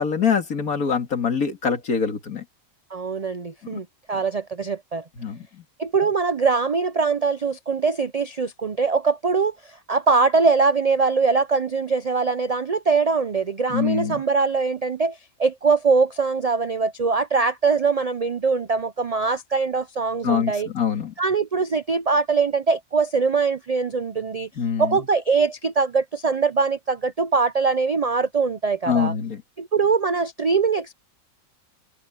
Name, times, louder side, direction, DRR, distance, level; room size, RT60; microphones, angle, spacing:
voice 1, 0.0-2.4 3.7-3.8 5.2-5.6 13.7-14.2 20.2-21.1 24.6-25.1 28.9-29.4, left 7 dB, 80° left, 2.7 m, -24 dB
voice 2, 2.9-5.0 5.8-9.5 9.9-20.7 21.2-24.5 24.8-29.1 29.6-30.9, right 4 dB, 55° right, 0.4 m, -22 dB
omnidirectional pair, 1.5 m